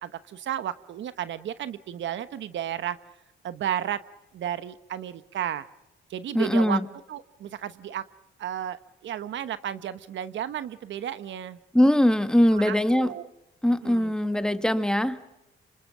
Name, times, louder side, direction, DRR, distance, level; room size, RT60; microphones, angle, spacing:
voice 1, 0.0-3.0 3.4-4.0 4.3-5.6 6.1-6.8 7.1-8.0 8.4-11.6 12.5-13.3 13.8-14.1, right 10 dB, 70° right, 13 dB, 1.1 m, -33 dB
voice 2, 6.3-6.9 11.7-13.1 13.6-15.4, left 1 dB, 5° left, 10 dB, 1.6 m, -22 dB
27.5 x 26.0 x 6.2 m, 0.94 s
cardioid pair, 90°, 20 cm